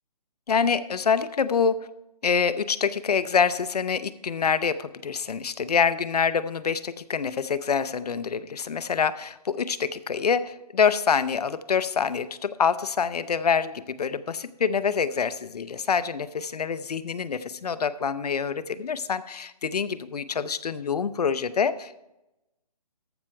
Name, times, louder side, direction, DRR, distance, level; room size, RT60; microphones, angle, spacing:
voice 1, 0.5-1.9 2.2-22.0, left 6 dB, 70° left, 15 dB, 0.7 m, -26 dB
14.0 x 5.6 x 4.4 m, 0.92 s
hypercardioid pair, 160°, 21 cm